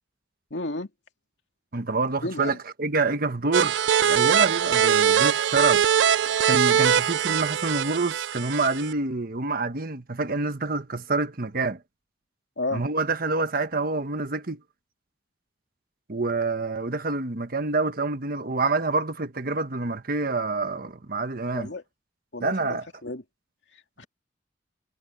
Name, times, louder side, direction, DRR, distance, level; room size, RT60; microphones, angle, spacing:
voice 1, 0.5-0.9 2.2-2.6 12.6-12.8 21.5-21.8 22.3-23.2 23.7-24.1, left 2 dB, 80° left, 2.4 m, -32 dB
voice 2, 1.7-3.8 4.0-5.9 6.5-11.8 12.7-14.6 16.1-21.7 22.4-22.8, right 3 dB, 55° right, 1.3 m, -27 dB
sound 1, 3.5-8.9, right 9 dB, 75° right, 0.4 m, -22 dB
head